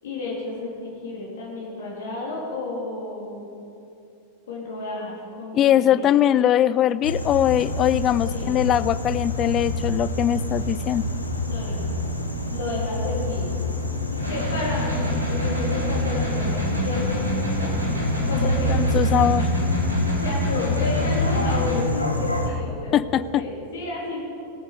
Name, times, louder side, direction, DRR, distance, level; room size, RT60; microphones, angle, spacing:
voice 1, 0.0-3.5 4.5-6.1 8.3-8.5 11.5-11.9 12.4-13.5 14.1-17.7 18.3-18.9 20.2-24.2, left 2 dB, 60° left, -4 dB, 3.0 m, -32 dB
voice 2, 5.5-11.0 18.7-19.5 22.9-23.4, left 11 dB, 30° left, 17 dB, 0.3 m, -21 dB
sound 1, 7.0-22.5, left 1 dB, 85° left, 1.1 m, -27 dB
sound 2, 14.2-21.8, left 1 dB, 85° right, 3.0 m, -27 dB
18.0 x 8.8 x 5.1 m, 2.7 s
figure-of-eight pair, 90°, 0 cm